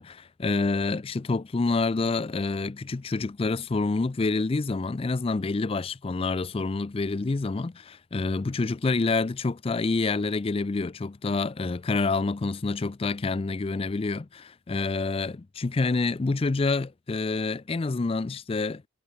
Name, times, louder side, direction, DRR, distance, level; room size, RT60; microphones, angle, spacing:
voice 1, 0.0-18.8, left 3 dB, 30° left, 0.4 m, -27 dB
head